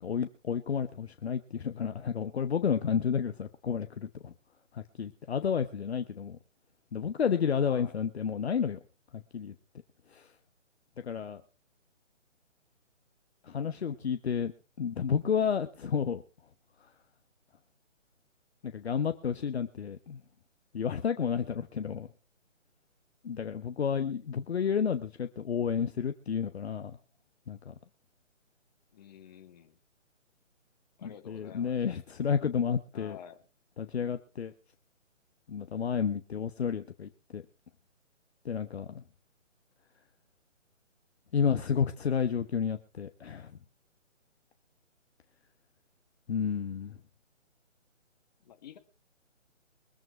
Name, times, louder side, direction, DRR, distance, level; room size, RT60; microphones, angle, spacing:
voice 1, 0.0-4.3 4.7-6.4 6.9-8.8 9.1-9.5 10.1-10.3 11.0-11.4 13.4-14.5 14.8-16.2 18.6-20.2 20.7-22.1 23.2-27.0 27.5-27.7 31.0-33.2 33.8-34.5 35.5-37.4 38.4-39.0 41.3-43.5 46.3-47.0, left 7 dB, 55° left, 8 dB, 1.1 m, -31 dB
voice 2, 7.7-8.0 28.9-29.8 31.0-32.0 32.9-33.4 48.4-48.8, left 9 dB, 35° left, 6 dB, 1.9 m, -50 dB
23.0 x 7.7 x 4.4 m, 0.34 s
figure-of-eight pair, 150°, 38 cm